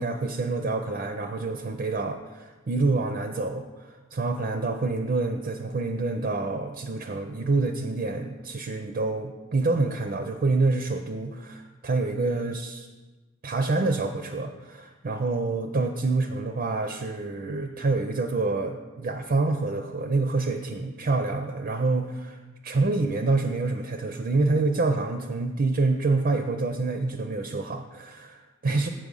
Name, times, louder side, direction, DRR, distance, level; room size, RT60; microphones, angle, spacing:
voice 1, 0.0-12.8 13.4-22.4 22.6-28.9, right 3 dB, 45° right, 5 dB, 0.4 m, -27 dB
7.7 x 4.9 x 5.3 m, 1.3 s
head